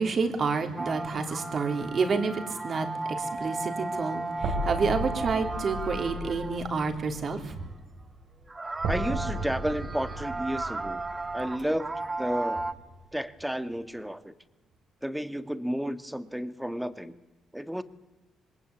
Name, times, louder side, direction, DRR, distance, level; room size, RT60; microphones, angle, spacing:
voice 1, 0.0-7.6, right 4 dB, 50° right, 6 dB, 3.5 m, -29 dB
sound 1, 0.8-6.8 8.5-12.7, right 2 dB, 20° right, 1.5 m, -35 dB
sound 2, 4.4-12.4, right 1 dB, 75° right, 3.9 m, -36 dB
voice 2, 8.9-11.0 11.3-12.6 13.1-14.3 15.0-17.2 17.5-17.8, equal, 5° right, 11 dB, 1.6 m, -32 dB
26.5 x 21.5 x 8.6 m, 1.1 s
cardioid pair, 90°, 0 cm